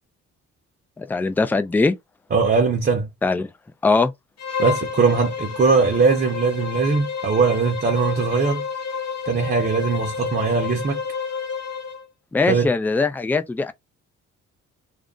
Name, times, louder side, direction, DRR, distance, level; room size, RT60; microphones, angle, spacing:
voice 1, 1.0-2.0 3.2-3.5 3.8-4.1 12.3-13.7, left 3 dB, 5° left, 0.3 m, -21 dB
voice 2, 2.3-3.1 4.6-8.6 9.3-11.0 12.5-12.7, right 4 dB, 30° right, 0.7 m, -20 dB
Bowed string instrument, 4.4-12.1, left 6 dB, 55° left, 1.0 m, -30 dB
2.5 x 2.0 x 3.6 m
cardioid pair, 90°, 30 cm